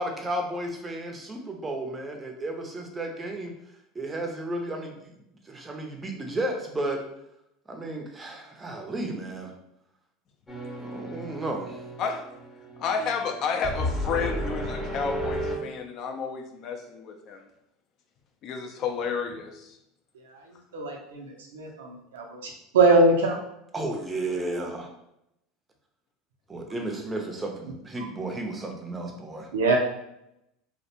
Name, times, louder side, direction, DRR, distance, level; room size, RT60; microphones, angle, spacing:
voice 1, 0.0-3.5 3.9-5.1 5.4-7.0 7.7-9.5 10.8-11.8 23.7-24.9 26.5-29.5, right 1 dB, 20° right, 2 dB, 0.5 m, -33 dB
sound 1, 10.5-15.6, equal, 20° left, 0.8 m, -33 dB
voice 2, 12.8-17.4 18.4-19.8, left 5 dB, 50° left, 4 dB, 0.4 m, -31 dB
voice 3, 20.7-21.9 22.1-22.2 22.7-23.4 29.5-29.8, right 3 dB, 90° right, 0 dB, 0.4 m, -21 dB
2.5 x 2.1 x 2.8 m, 0.82 s
supercardioid pair, 95°, 0 cm